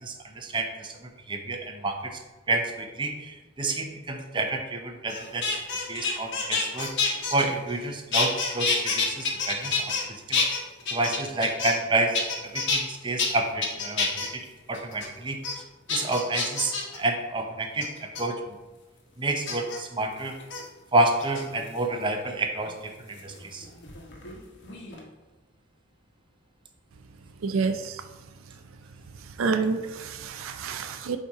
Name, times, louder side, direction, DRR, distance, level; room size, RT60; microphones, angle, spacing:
voice 1, 0.0-0.9 1.3-2.2 2.5-5.5 5.9-6.9 7.3-10.0 10.3-10.4 10.9-15.4 15.9-18.4 19.2-20.4 20.9-23.7, right 2 dB, 25° right, 3 dB, 0.6 m, -29 dB
sound 1, 5.1-7.8 8.1-10.0 10.3-11.9 12.1-12.8 13.2-13.3 13.6-14.3 14.7-15.1 15.4-15.5 15.9-17.0 17.8-18.2 19.5-19.8 20.4-20.6 21.2-21.8 23.2-24.4 24.6-25.0, left 4 dB, 60° left, 1.1 m, -28 dB
voice 2, 27.4-28.2 28.5-28.6 29.1-31.2, right 4 dB, 80° right, 9 dB, 0.4 m, -29 dB
7.4 x 2.8 x 4.6 m, 1.1 s
head